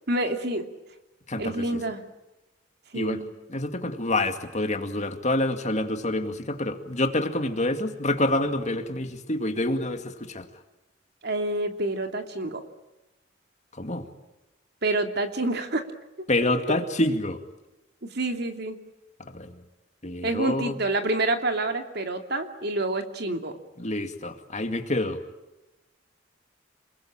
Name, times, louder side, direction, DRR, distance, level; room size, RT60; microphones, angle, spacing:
voice 1, 0.1-0.7 1.4-2.0 2.9-3.3 11.2-12.6 14.8-15.8 16.4-16.8 18.0-18.8 20.2-23.5, right 2 dB, 60° right, 6 dB, 2.7 m, -28 dB
voice 2, 1.3-1.8 2.9-3.2 3.5-10.5 13.7-14.1 16.3-17.4 19.2-19.6 20.0-20.7 23.8-25.2, left 1 dB, 40° left, 7 dB, 2.3 m, -27 dB
28.5 x 21.0 x 8.9 m, 0.99 s
head